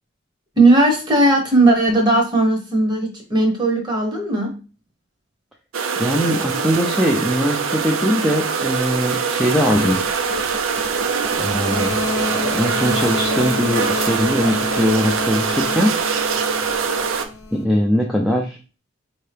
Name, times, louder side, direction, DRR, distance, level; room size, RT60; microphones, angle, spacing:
voice 1, 0.6-4.5, right 2 dB, 20° right, 2 dB, 0.9 m, -17 dB
sound 1, 5.7-17.2, right 5 dB, 85° right, 0.5 m, -23 dB
voice 2, 6.0-10.0 11.3-15.9 17.5-18.6, equal, ahead, -2 dB, 0.3 m, -21 dB
sound 2, 9.7-17.6, left 3 dB, 65° left, 0.6 m, -29 dB
4.4 x 2.8 x 3.3 m, 0.34 s
head